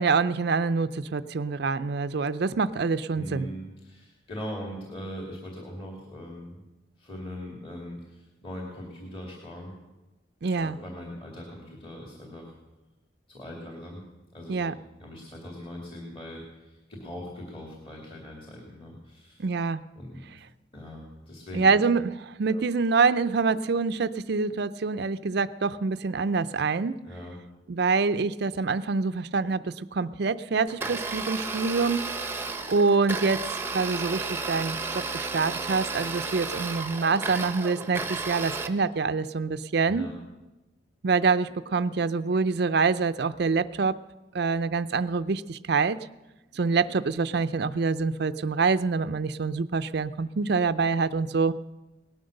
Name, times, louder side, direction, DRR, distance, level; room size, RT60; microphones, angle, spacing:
voice 1, 0.0-3.5 10.4-10.8 14.5-14.7 19.4-19.8 21.5-27.0 27.7-32.0 32.7-33.4 33.7-40.1 41.0-44.0 44.3-46.0 46.5-51.5, right 4 dB, 55° right, 12 dB, 0.5 m, -26 dB
voice 2, 3.1-6.6 7.0-9.8 10.5-12.5 13.3-14.0 14.3-19.5 20.0-20.2 20.7-21.8 22.5-22.6 27.0-27.4 39.9-40.1, equal, 30° left, -1 dB, 2.5 m, -41 dB
Domestic sounds home sounds, 30.7-38.7, right 4 dB, 10° right, 0.8 m, -33 dB
18.5 x 11.5 x 6.5 m, 1.0 s
head